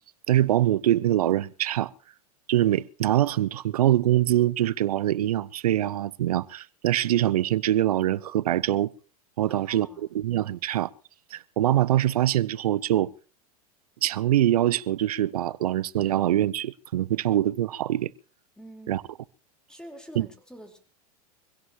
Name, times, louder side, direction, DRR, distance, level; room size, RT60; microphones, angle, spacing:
voice 1, 0.3-1.9 2.5-8.9 9.4-9.9 10.1-10.9 11.3-13.1 14.0-18.1 18.9-19.0 20.2-20.3, right 13 dB, 75° right, 0.8 m, -24 dB
voice 2, 9.5-10.1 18.6-19.0 19.7-20.8, right 1 dB, 5° left, 4.2 m, -46 dB
25.0 x 16.5 x 3.0 m
hypercardioid pair, 100°, 19 cm